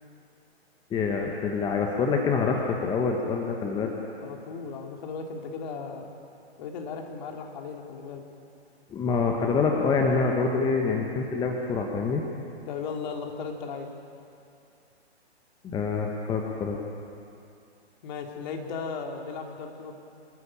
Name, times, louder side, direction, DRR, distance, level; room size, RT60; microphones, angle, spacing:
voice 1, 0.9-3.9 8.9-12.2 15.7-16.8, left 4 dB, 15° left, 1 dB, 1.4 m, -26 dB
voice 2, 4.2-6.1 6.6-8.2 10.6-10.7 12.7-13.9 18.0-19.9, left 5 dB, 40° left, 2 dB, 2.9 m, -36 dB
27.0 x 14.0 x 8.9 m, 2.5 s
figure-of-eight pair, 130°, 33 cm